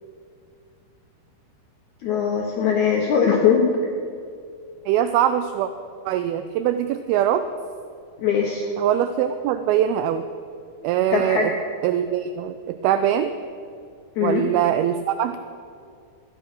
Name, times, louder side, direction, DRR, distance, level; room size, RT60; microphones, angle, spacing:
voice 1, 2.0-3.8 8.2-8.7 11.1-11.5 14.2-14.4, left 6 dB, 70° left, 0 dB, 1.8 m, -20 dB
voice 2, 4.9-5.7 6.1-7.5 8.8-10.2 10.8-11.5 11.8-13.4 14.2-15.4, right 10 dB, 80° right, 10 dB, 2.3 m, -22 dB
13.5 x 10.5 x 6.1 m, 2.3 s
omnidirectional pair, 4.6 m